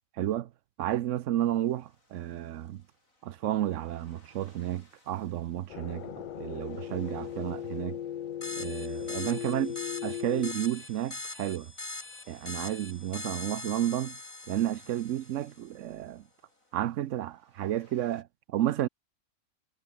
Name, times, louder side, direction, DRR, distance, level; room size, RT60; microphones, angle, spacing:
voice 1, 0.2-0.5 0.8-2.8 3.2-8.0 8.6-9.7 10.0-11.7 12.3-14.2 14.5-16.2 16.7-18.9, right 12 dB, 70° right, 1.0 m, -32 dB
sound 1, 1.4-18.2, left 1 dB, 85° left, 8.7 m, -65 dB
sound 2, 5.7-10.5, left 10 dB, 65° left, 0.5 m, -37 dB
sound 3, 8.4-15.6, left 3 dB, 25° left, 1.9 m, -42 dB
omnidirectional pair, 1.4 m